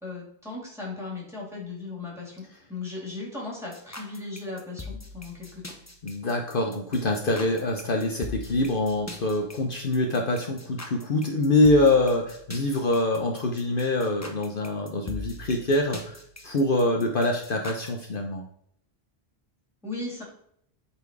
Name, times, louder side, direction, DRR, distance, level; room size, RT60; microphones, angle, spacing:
voice 1, 0.0-2.4 2.7-5.6 19.8-20.2, left 3 dB, 5° right, -4 dB, 3.1 m, -37 dB
sound 1, 3.7-17.9, left 3 dB, 15° left, 0.9 m, -42 dB
voice 2, 6.0-16.2 16.4-18.5, left 2 dB, 55° left, 2 dB, 1.0 m, -24 dB
8.4 x 4.6 x 4.6 m, 0.69 s
omnidirectional pair, 1.1 m